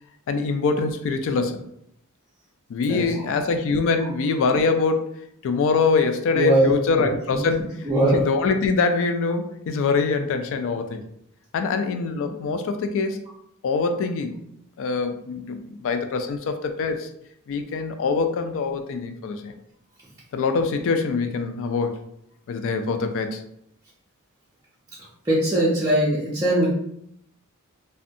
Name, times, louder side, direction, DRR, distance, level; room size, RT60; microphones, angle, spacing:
voice 1, 0.3-1.7 2.7-5.1 5.4-7.7 8.0-11.0 11.5-13.2 13.6-14.4 14.8-17.1 17.5-19.5 20.3-22.0 22.5-23.4, left 4 dB, 65° left, 8 dB, 0.3 m, -24 dB
voice 2, 6.3-6.7 7.0-7.4 7.9-8.2 25.3-26.7, right 1 dB, 15° right, -8 dB, 0.4 m, -20 dB
2.5 x 2.2 x 2.5 m, 0.73 s
head